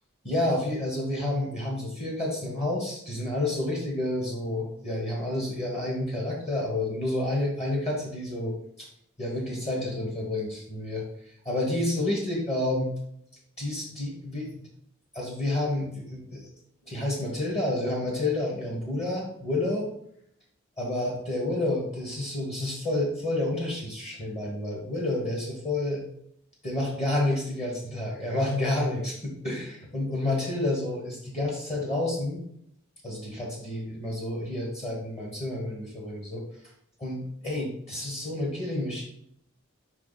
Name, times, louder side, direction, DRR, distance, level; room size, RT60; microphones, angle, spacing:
voice 1, 0.2-8.9 9.2-12.9 13.6-14.6 15.1-16.5 16.8-19.9 20.8-26.0 26.6-32.4 33.0-36.4 37.0-39.0, left 1 dB, 30° left, -2 dB, 1.4 m, -29 dB
5.5 x 4.8 x 4.1 m, 0.70 s
head